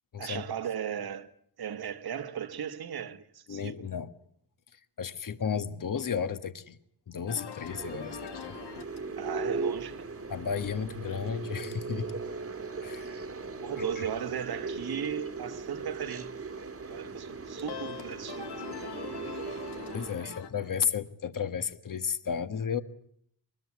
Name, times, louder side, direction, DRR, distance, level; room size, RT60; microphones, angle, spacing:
voice 1, 0.2-1.3 1.6-3.7 9.2-10.1 13.6-16.3 16.9-18.5 18.8-19.3 20.2-20.4, right 8 dB, 70° right, 1.5 m, -37 dB
voice 2, 3.5-4.1 5.0-6.8 7.1-8.6 10.3-12.1 12.8-13.1 14.0-14.1 19.9-22.8, left 7 dB, 55° left, 1.5 m, -33 dB
sound 1, 7.3-20.5, left 8 dB, 85° left, 1.7 m, -46 dB
sound 2, 7.7-20.2, right 4 dB, 35° right, 1.6 m, -38 dB
24.0 x 20.5 x 9.8 m
wide cardioid pair, 110°, 39 cm